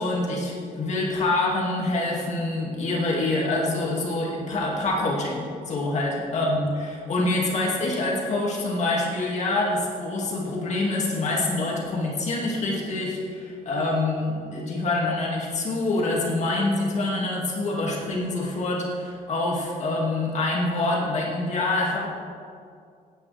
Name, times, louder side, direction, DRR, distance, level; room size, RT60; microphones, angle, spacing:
voice 1, 0.0-22.1, left 2 dB, 50° left, -3 dB, 2.3 m, -26 dB
17.5 x 9.5 x 3.4 m, 2.3 s
cardioid pair, 125°, 15 cm